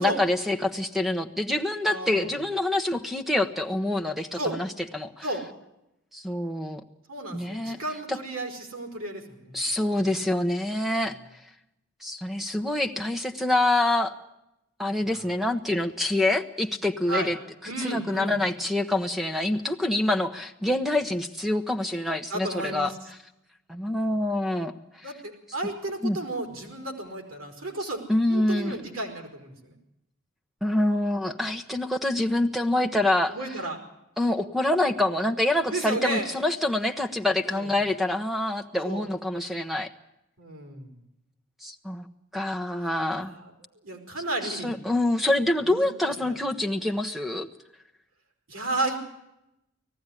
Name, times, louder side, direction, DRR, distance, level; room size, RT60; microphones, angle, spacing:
voice 1, 0.0-4.7 4.9-5.2 6.1-6.8 7.3-7.8 8.1-8.2 9.5-11.2 12.0-14.1 14.8-17.4 17.6-22.9 23.7-24.7 25.0-25.1 26.0-26.2 28.1-28.8 30.6-33.3 34.2-39.9 41.6-42.0 42.3-43.3 44.4-47.5, left 1 dB, ahead, 6 dB, 1.0 m, -26 dB
voice 2, 1.8-2.3 4.3-4.6 5.2-5.5 7.1-9.6 15.1-15.2 17.1-17.3 17.6-18.4 22.3-23.0 25.0-29.7 33.3-33.8 35.7-36.3 37.5-37.7 38.8-39.1 40.4-40.9 42.8-43.5 43.8-44.7 45.6-45.9 46.2-46.4 48.5-49.0, right 2 dB, 80° right, 5 dB, 4.7 m, -33 dB
19.5 x 14.5 x 9.9 m, 0.87 s
head